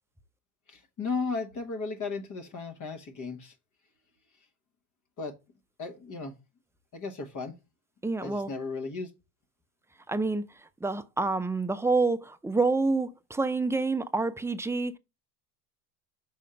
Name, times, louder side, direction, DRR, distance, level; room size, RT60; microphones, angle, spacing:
voice 1, 0.7-3.5 5.2-5.4 5.8-6.3 6.9-7.5 8.2-9.1, left 4 dB, 40° left, 1.2 m, -35 dB
voice 2, 8.0-8.5 10.1-10.5 10.8-15.0, right 3 dB, 5° right, 0.4 m, -27 dB
6.2 x 3.7 x 5.6 m
supercardioid pair, 90°, 48 cm